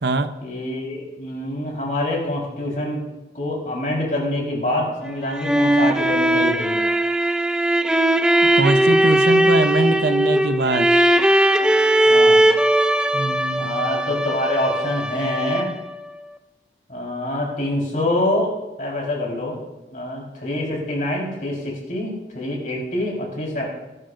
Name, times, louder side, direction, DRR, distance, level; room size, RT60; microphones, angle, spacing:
voice 1, 0.4-3.0 3.3-6.8 12.1-12.4 13.6-15.7 16.9-18.5 18.8-19.6 19.9-23.6, left 1 dB, 50° left, -2 dB, 4.3 m, -25 dB
sound 1, 5.1-15.9, right 1 dB, 5° right, 0.4 m, -18 dB
voice 2, 8.5-10.9 13.1-13.7, right 2 dB, 70° right, 9 dB, 0.8 m, -22 dB
20.5 x 12.0 x 2.6 m, 1.1 s
head